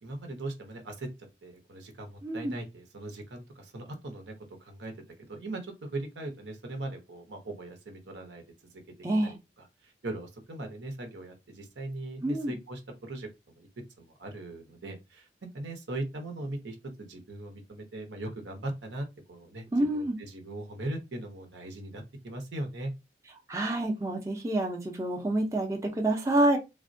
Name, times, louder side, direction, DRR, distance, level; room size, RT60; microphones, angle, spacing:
voice 1, 0.0-1.1 1.4-4.3 4.6-4.9 5.3-8.4 8.7-8.8 9.2-13.3 13.6-13.7 14.0-22.9, right 1 dB, 85° right, 0.8 m, -39 dB
voice 2, 2.2-2.5 9.0-9.3 12.2-12.5 19.7-20.1 23.5-26.6, right 1 dB, 15° right, 0.4 m, -27 dB
3.3 x 2.1 x 2.5 m
head